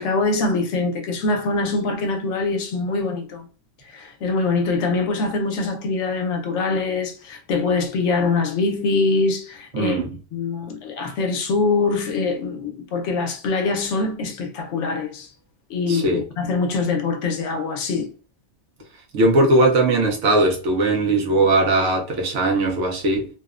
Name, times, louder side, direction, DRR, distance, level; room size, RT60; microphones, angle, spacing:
voice 1, 0.0-3.5 3.9-10.0 10.3-15.3 15.7-18.1, left 3 dB, 85° left, 0.9 m, -23 dB
voice 2, 9.7-10.1 15.9-16.2 19.1-23.3, right 2 dB, 85° right, 1.0 m, -19 dB
2.8 x 2.1 x 2.3 m
omnidirectional pair, 1.2 m